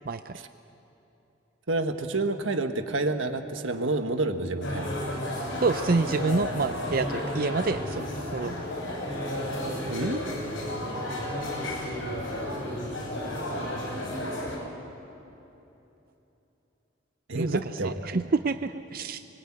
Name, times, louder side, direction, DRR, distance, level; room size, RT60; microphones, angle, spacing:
voice 1, 0.1-0.4 5.6-8.0 8.3-8.6 17.3-17.5 17.8-19.2, right 3 dB, 50° right, 10 dB, 0.5 m, -27 dB
voice 2, 1.7-4.9 9.9-10.2 17.3-18.1, right 2 dB, 90° right, 7 dB, 1.5 m, -29 dB
sound 1, 4.6-14.6, left 1 dB, 90° left, 6.2 m, -32 dB
24.5 x 21.5 x 8.9 m, 3.0 s
head